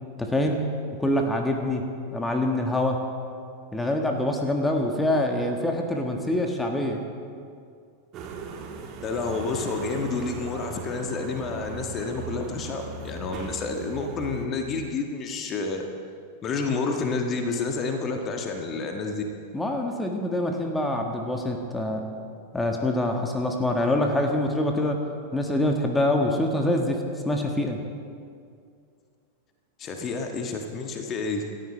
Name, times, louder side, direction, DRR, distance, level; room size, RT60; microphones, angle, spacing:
voice 1, 0.2-0.6 1.0-3.0 3.7-7.0 19.5-22.1 22.5-25.0 25.3-27.8, left 1 dB, 10° left, 3 dB, 1.7 m, -25 dB
sound 1, 8.1-14.5, right 5 dB, 35° right, 1.9 m, -38 dB
voice 2, 9.0-15.9 16.4-19.2 29.8-31.5, left 4 dB, 30° left, 3 dB, 1.6 m, -29 dB
28.0 x 14.0 x 3.4 m, 2.3 s
figure-of-eight pair, 90°, 0 cm